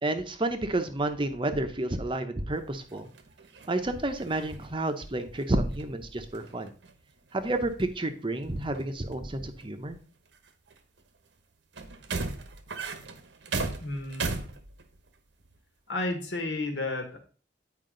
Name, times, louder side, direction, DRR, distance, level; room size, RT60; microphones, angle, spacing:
voice 1, 0.0-3.1 3.7-6.7 7.3-10.0, right 2 dB, 25° right, 8 dB, 0.7 m, -30 dB
sound 1, 2.8-6.0 6.3-7.2 7.4-8.0 8.5-9.2 9.6-9.7 10.3-11.0 11.7-15.1 15.4-15.6, right 3 dB, 70° right, 1.0 m, -37 dB
voice 2, 13.8-14.6 15.9-17.2, left 2 dB, 75° left, 4 dB, 1.7 m, -32 dB
9.3 x 5.0 x 3.8 m, 0.38 s
head